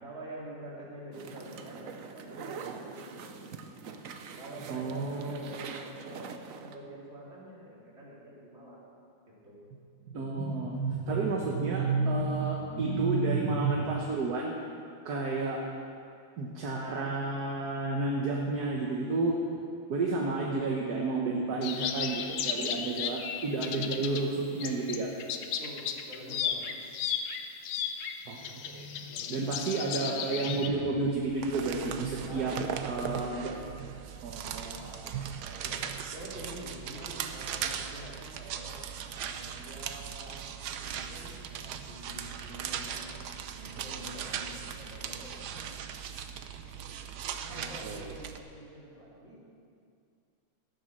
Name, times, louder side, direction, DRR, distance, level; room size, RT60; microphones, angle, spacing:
voice 1, 0.0-3.4 4.4-8.8 9.4-9.7 21.2-21.8 22.7-23.0 23.4-23.9 25.5-26.8 29.0-29.6 32.3-33.1 35.4-38.8 39.3-43.2 43.5-45.6 47.4-49.4, right 1 dB, 30° right, -7 dB, 3.8 m, -47 dB
sound 1, 1.1-6.8, right 5 dB, 85° right, 0.7 m, -44 dB
voice 2, 4.7-5.4 10.1-14.5 15.0-15.6 16.4-19.4 19.9-25.1 28.3-32.5 32.8-33.6 34.2-35.0 47.5-48.1, right 3 dB, 55° right, -1 dB, 1.4 m, -31 dB
sound 2, 21.6-24.3 24.6-30.7, left 8 dB, 80° left, 1.6 m, -35 dB
sound 3, 31.1-48.4, right 8 dB, 70° right, 1.0 m, -38 dB
14.0 x 9.6 x 6.5 m, 2.4 s
omnidirectional pair, 2.4 m